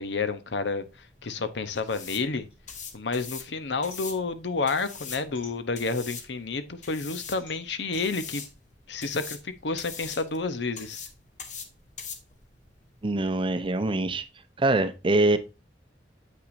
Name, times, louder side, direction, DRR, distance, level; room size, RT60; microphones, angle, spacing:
voice 1, 0.0-2.5 2.9-8.4 8.9-11.1, left 4 dB, 85° left, 0.8 m, -30 dB
sound 1, 0.8-14.3, left 6 dB, 45° left, 1.1 m, -43 dB
sound 2, 1.8-3.3 3.6-6.2 6.6-9.8, left 2 dB, 65° left, 3.9 m, -54 dB
voice 2, 13.0-14.2 14.6-15.4, right 2 dB, 30° right, 0.6 m, -24 dB
7.9 x 5.8 x 2.6 m
head